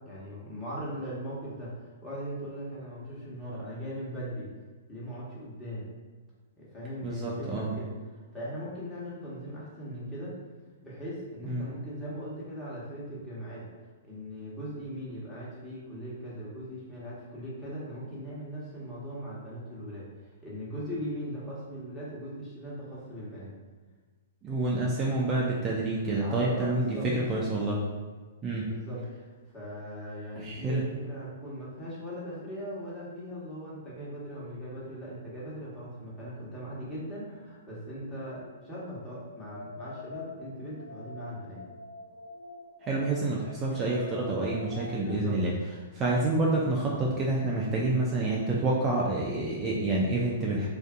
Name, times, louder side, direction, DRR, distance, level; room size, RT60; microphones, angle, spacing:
voice 1, 0.0-4.5 4.9-5.9 6.6-10.3 10.8-13.7 14.0-20.1 20.4-23.5 26.2-27.1 28.6-29.0 29.5-41.6 45.0-45.4, equal, 15° left, -8 dB, 1.0 m, -39 dB
voice 2, 7.0-7.7 11.5-11.6 24.4-27.8 28.4-28.7 30.4-30.8 42.8-45.5 45.9-50.7, right 2 dB, 25° right, -4 dB, 0.4 m, -28 dB
sound 1, 36.3-37.0 37.3-45.2, left 3 dB, 80° left, 0.5 m, -47 dB
2.5 x 2.5 x 2.4 m, 1.4 s
hypercardioid pair, 130°, 0 cm